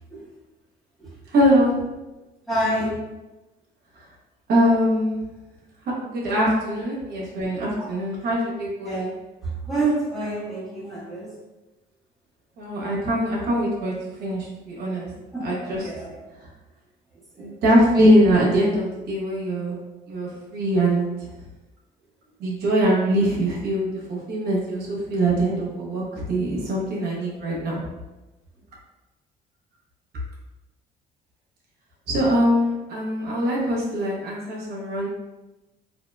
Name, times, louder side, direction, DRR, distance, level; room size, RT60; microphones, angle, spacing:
voice 1, 1.3-1.7 4.5-5.2 6.0-9.1 12.6-15.1 15.4-15.9 17.4-19.8 20.1-21.0 22.4-27.8 32.1-35.1, equal, 70° right, -5 dB, 0.9 m, -22 dB
voice 2, 2.5-3.0 7.8-7.9 8.8-9.1 9.4-11.3 15.3-16.2 17.3-17.5, right 2 dB, ahead, -9 dB, 1.2 m, -28 dB
2.9 x 2.8 x 2.2 m, 1.1 s
cardioid pair, 110°, 17 cm